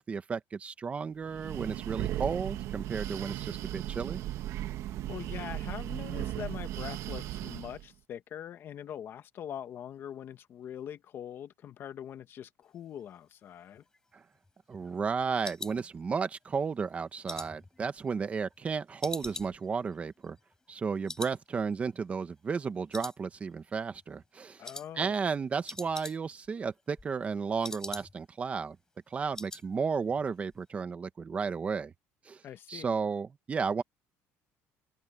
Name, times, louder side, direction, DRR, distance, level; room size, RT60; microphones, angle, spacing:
voice 1, 0.0-4.2 14.7-20.4 20.7-24.6 25.0-28.7 29.1-31.9 32.3-32.4 32.7-33.8, right 5 dB, 25° right, 1.4 m, -33 dB
Breathing, 1.2-7.9, right 14 dB, 60° right, 1.1 m, -36 dB
voice 2, 5.1-13.8 24.6-25.3 32.4-33.0, left 9 dB, 40° left, 1.2 m, -43 dB
sound 1, 13.7-16.5 16.9-18.6 19.0-20.8 21.1-21.4 21.7-21.8 22.3-22.7 22.9-23.7 24.0-24.3 24.6-24.9 25.2-25.3 25.5-26.5 26.8-28.4 28.7-28.8 29.1-29.7 30.0-30.2 30.5-30.6, left 2 dB, 10° left, 6.5 m, -44 dB
cardioid pair, 150°, 6 cm